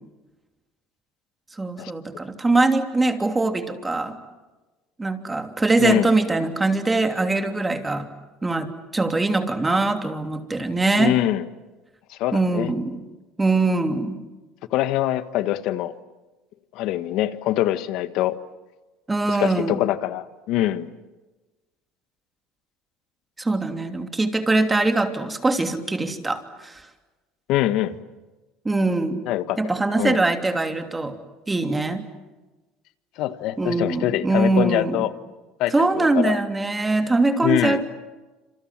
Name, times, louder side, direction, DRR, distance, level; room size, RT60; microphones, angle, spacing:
voice 1, 1.6-4.2 5.0-8.1 8.4-11.2 12.3-13.0 13.4-14.2 19.1-19.8 23.4-26.8 28.6-29.2 29.6-31.2 31.5-32.0 33.6-35.0 35.7-37.8, right 2 dB, 15° right, 6 dB, 3.0 m, -22 dB
voice 2, 5.8-6.1 11.0-11.4 12.1-12.7 14.7-15.9 16.7-18.4 19.3-20.9 27.5-28.0 29.2-29.6 30.0-30.2 33.2-35.1 35.6-36.4 37.4-37.8, left 14 dB, 65° left, 13 dB, 1.5 m, -24 dB
27.5 x 27.5 x 7.6 m, 1.2 s
supercardioid pair, 100°, 0 cm